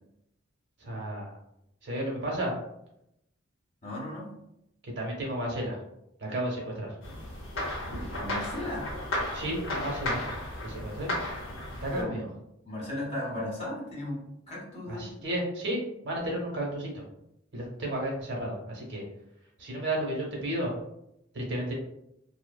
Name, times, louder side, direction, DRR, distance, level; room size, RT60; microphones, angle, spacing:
voice 1, 0.8-1.3 1.8-2.5 4.8-5.8 6.2-6.9 9.3-10.2 10.6-11.1 11.8-12.3 14.9-17.0 17.5-19.0 19.6-20.7 21.3-21.7, right 1 dB, 65° right, -2 dB, 0.8 m, -32 dB
voice 2, 3.8-4.3 8.1-8.9 11.9-12.1 12.6-15.1, left 1 dB, 30° left, -3 dB, 0.8 m, -36 dB
sound 1, 7.0-12.0, left 1 dB, 75° left, 0.7 m, -34 dB
2.8 x 2.0 x 2.2 m, 0.81 s
head